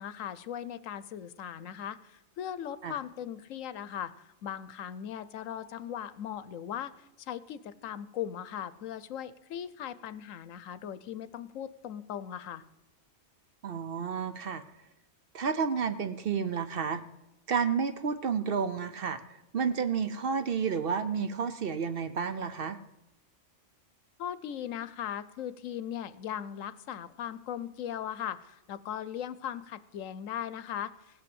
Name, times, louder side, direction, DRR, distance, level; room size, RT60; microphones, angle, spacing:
voice 1, 0.0-4.1 4.4-6.9 7.3-12.6 24.2-30.9, left 10 dB, 85° left, 15 dB, 1.1 m, -38 dB
voice 2, 13.6-14.6 15.3-17.0 17.5-19.2 19.5-22.8, right 6 dB, 55° right, 11 dB, 0.8 m, -31 dB
17.5 x 5.9 x 7.8 m, 0.90 s
omnidirectional pair, 1.3 m